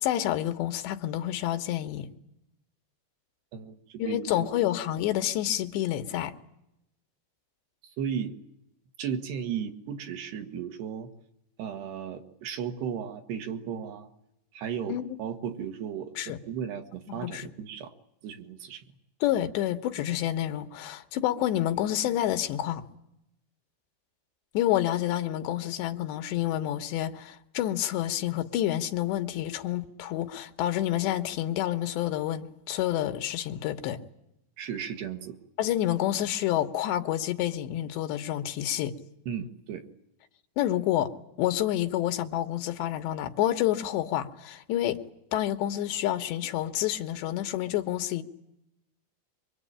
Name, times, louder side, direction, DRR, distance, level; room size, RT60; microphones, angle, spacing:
voice 1, 0.0-2.1 4.0-6.3 14.9-15.2 16.2-16.4 17.1-17.5 19.2-22.9 24.5-34.0 35.6-38.9 40.6-41.1 41.4-45.0 45.3-48.2, left 12 dB, 90° left, 3.4 m, -28 dB
voice 2, 3.5-4.7 8.0-8.4 9.0-11.1 11.6-14.1 14.5-17.9 18.2-18.9 34.6-35.4 39.3-39.8, right 8 dB, 75° right, 3.5 m, -35 dB
25.5 x 23.5 x 8.8 m
omnidirectional pair, 4.9 m